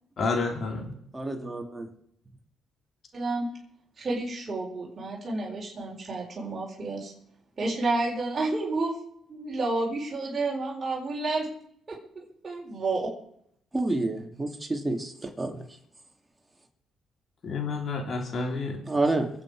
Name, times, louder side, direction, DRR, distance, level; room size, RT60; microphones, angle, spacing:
voice 1, 0.2-0.9 17.4-18.8, left 4 dB, 55° left, 3 dB, 3.4 m, -29 dB
voice 2, 1.1-1.9 13.7-15.1 15.4-15.5 18.9-19.3, right 2 dB, 15° right, 2 dB, 2.8 m, -28 dB
voice 3, 3.1-3.5 4.0-7.1 7.6-9.0 9.3-11.5 11.9-13.1, right 2 dB, 35° right, -4 dB, 4.6 m, -30 dB
24.5 x 8.4 x 5.0 m, 0.70 s
cardioid pair, 90°, 0 cm